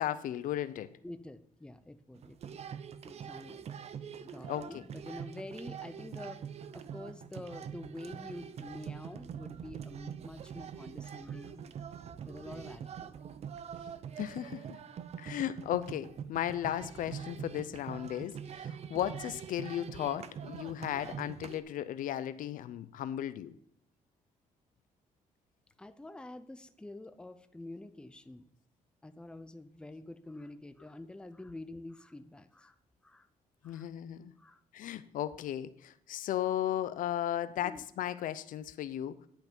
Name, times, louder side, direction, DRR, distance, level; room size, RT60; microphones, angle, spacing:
voice 1, 0.0-0.9 4.5-4.8 14.2-14.8 15.2-23.5 33.6-34.3 34.7-37.7 38.0-39.2, left 11 dB, 75° left, 14 dB, 0.5 m, -35 dB
voice 2, 1.0-2.6 3.0-3.6 4.2-6.5 6.7-11.7 12.3-13.2 25.8-28.5 29.0-32.8 33.0-33.3 33.6-33.9 34.4-34.6 37.6-37.8, left 2 dB, 5° left, 10 dB, 0.6 m, -47 dB
sound 1, 2.1-21.6, right 8 dB, 50° right, 0.6 m, -44 dB
10.5 x 5.8 x 5.3 m, 0.68 s
cardioid pair, 115°, 14 cm